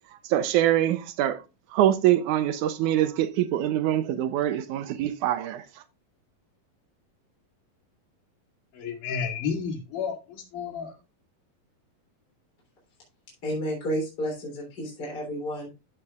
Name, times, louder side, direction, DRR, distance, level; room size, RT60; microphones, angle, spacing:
voice 1, 0.2-1.4 1.7-5.6, right 12 dB, 80° right, 1.9 m, -24 dB
voice 2, 8.7-10.9, left 6 dB, 65° left, 3.5 m, -31 dB
voice 3, 13.4-15.7, equal, 30° left, 3.6 m, -31 dB
14.5 x 5.6 x 2.4 m
omnidirectional pair, 4.0 m